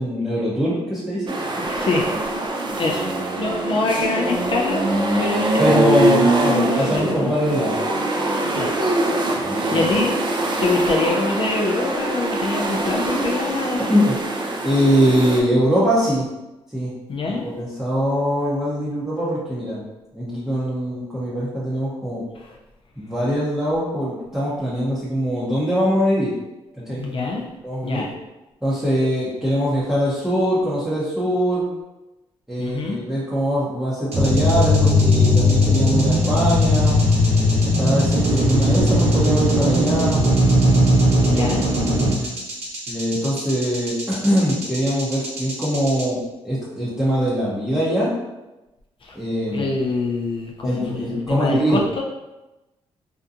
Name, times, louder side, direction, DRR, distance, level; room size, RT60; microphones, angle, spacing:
voice 1, 0.0-1.3 5.6-7.7 9.4-9.8 13.9-14.2 14.6-16.3 16.7-16.9 17.3-19.8 20.1-22.2 23.0-26.3 26.8-27.0 27.6-28.0 28.6-31.7 32.5-37.0 37.8-40.3 41.3-42.3 42.9-48.1 49.1-49.7 50.6-51.8, equal, 5° right, -9 dB, 0.7 m, -22 dB
sound 1, 1.3-15.4, right 2 dB, 40° right, 0.5 m, -23 dB
voice 2, 1.6-2.2 2.7-3.1 3.4-7.4 8.5-8.8 9.7-10.1 10.6-13.9 17.1-17.5 22.3-22.6 26.9-27.4 27.8-28.1 32.6-33.0 41.2-41.7 49.0-49.2 49.5-52.0, left 3 dB, 45° left, 0 dB, 0.4 m, -25 dB
sound 2, 34.1-46.0, left 1 dB, 60° right, 0.8 m, -18 dB
2.6 x 2.2 x 2.5 m, 1.0 s
supercardioid pair, 65°, 12 cm